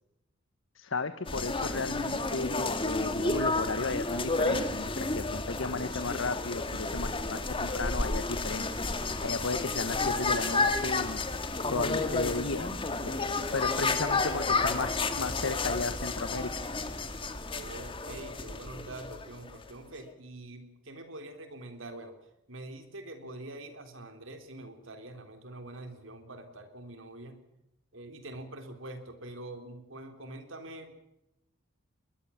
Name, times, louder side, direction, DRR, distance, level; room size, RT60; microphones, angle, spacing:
voice 1, 0.8-8.7 9.0-11.2 11.7-13.1 13.5-16.5, left 3 dB, 75° left, 11 dB, 1.2 m, -34 dB
sound 1, 1.3-19.7, left 3 dB, 25° left, 2.1 m, -31 dB
voice 2, 17.5-22.2 22.5-27.4 27.9-31.0, right 1 dB, 75° right, 7 dB, 3.9 m, -45 dB
22.0 x 20.5 x 7.3 m, 0.89 s
head